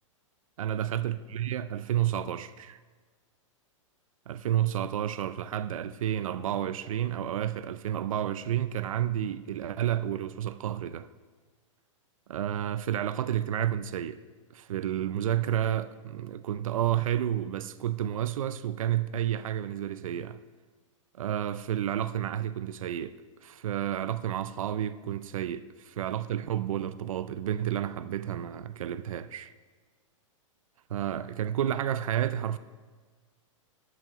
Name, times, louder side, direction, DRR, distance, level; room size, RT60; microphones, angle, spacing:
voice 1, 0.6-2.8 4.3-11.1 12.3-14.2 14.5-20.4 21.2-23.1 23.4-29.5 30.9-32.6, right 11 dB, 85° right, 0.4 m, -30 dB
12.5 x 7.6 x 3.0 m
hypercardioid pair, 135°, 17 cm